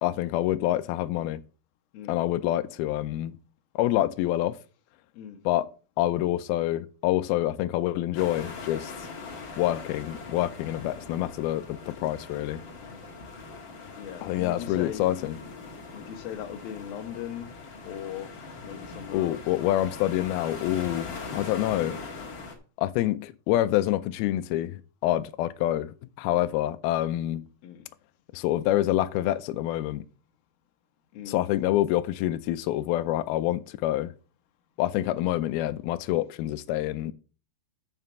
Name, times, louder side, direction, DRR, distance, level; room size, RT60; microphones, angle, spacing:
voice 1, 0.0-1.4 2.1-3.4 3.8-4.6 5.5-5.7 6.0-9.1 9.6-12.6 14.2-15.4 19.1-22.0 22.8-27.5 28.3-30.1 31.3-34.1 34.8-37.1, left 14 dB, 90° left, 2.1 m, -27 dB
sound 1, 8.1-22.5, left 4 dB, 55° left, 1.3 m, -41 dB
voice 2, 14.0-15.1 15.9-17.5 17.8-18.3 18.6-19.4 27.6-27.9 31.1-31.4, left 10 dB, 70° left, 2.6 m, -38 dB
7.6 x 5.8 x 6.9 m
omnidirectional pair, 5.0 m